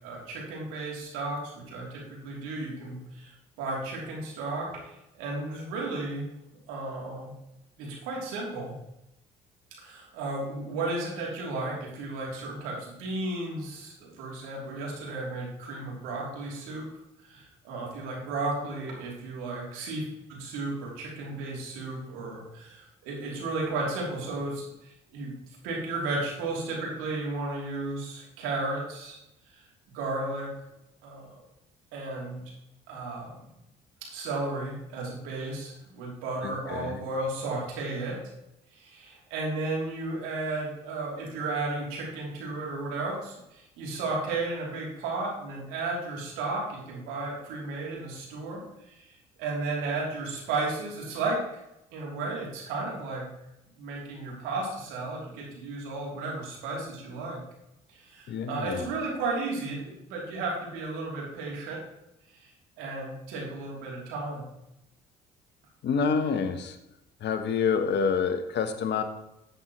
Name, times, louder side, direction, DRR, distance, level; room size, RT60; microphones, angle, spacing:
voice 1, 0.0-6.3 6.7-7.3 7.8-8.7 9.8-16.9 17.2-20.0 20.3-25.3 25.6-29.2 29.5-29.6 29.9-30.5 31.0-31.4 31.9-32.4 32.9-33.4 34.1-38.2 38.7-48.6 48.9-51.6 51.9-53.2 53.7-57.4 57.9-61.8 62.3-62.5 62.8-64.4, right 2 dB, 75° right, -3 dB, 3.3 m, -34 dB
voice 2, 36.4-37.0 58.3-58.9 65.8-66.8 67.2-69.0, left 6 dB, 55° left, 8 dB, 1.2 m, -27 dB
11.5 x 8.0 x 3.1 m, 0.87 s
hypercardioid pair, 55°, 21 cm